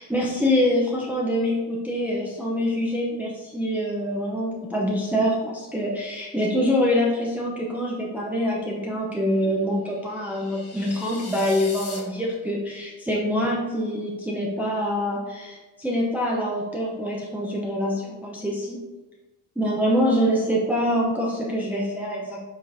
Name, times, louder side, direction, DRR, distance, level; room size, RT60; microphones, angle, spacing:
voice 1, 0.0-18.8 19.6-22.4, equal, 5° right, -3 dB, 0.7 m, -25 dB
sound 1, 10.0-12.0, left 3 dB, 30° left, 1.2 m, -40 dB
5.6 x 3.1 x 2.7 m, 1.2 s
hypercardioid pair, 55°, 50 cm